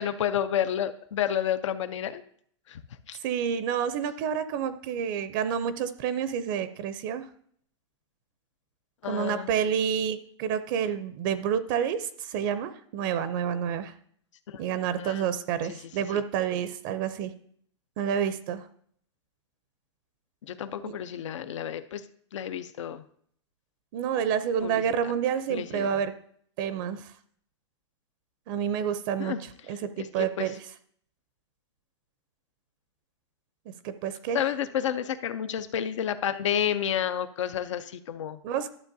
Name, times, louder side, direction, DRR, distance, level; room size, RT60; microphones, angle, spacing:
voice 1, 0.0-2.2 2.7-2.8 3.1-3.2 9.0-9.5 14.5-14.6 15.0-15.3 15.7-15.8 16.1-16.2 20.4-22.0 22.3-23.0 24.6-25.1 25.5-26.0 29.2-29.4 29.7-30.6 34.3-38.4, left 9 dB, 85° left, 12 dB, 0.5 m, -30 dB
voice 2, 3.2-7.3 9.1-13.9 14.6-17.3 18.0-18.7 20.8-20.9 23.9-26.1 26.6-27.1 28.5-29.3 29.7-30.5 33.8-34.4 38.4-38.7, right 8 dB, 45° right, 12 dB, 0.5 m, -29 dB
11.5 x 7.1 x 2.6 m, 0.62 s
hypercardioid pair, 145°, 15 cm